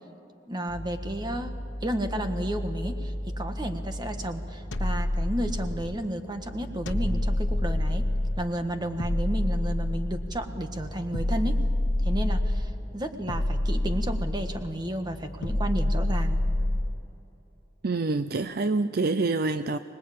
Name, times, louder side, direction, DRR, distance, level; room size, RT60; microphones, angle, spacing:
voice 1, 0.5-1.5 1.8-8.1 8.4-11.6 12.0-16.4, right 1 dB, 20° right, 6 dB, 1.5 m, -32 dB
sound 1, 0.7-17.0, equal, 40° left, 3.0 m, -38 dB
sound 2, 4.7-6.0 6.9-8.5 9.0-10.4 11.1-12.7 13.3-14.7 15.4-17.0, left 1 dB, 65° left, 1.2 m, -27 dB
voice 2, 17.8-19.8, right 3 dB, 50° right, 11 dB, 0.5 m, -26 dB
25.0 x 20.5 x 8.6 m, 2.9 s
head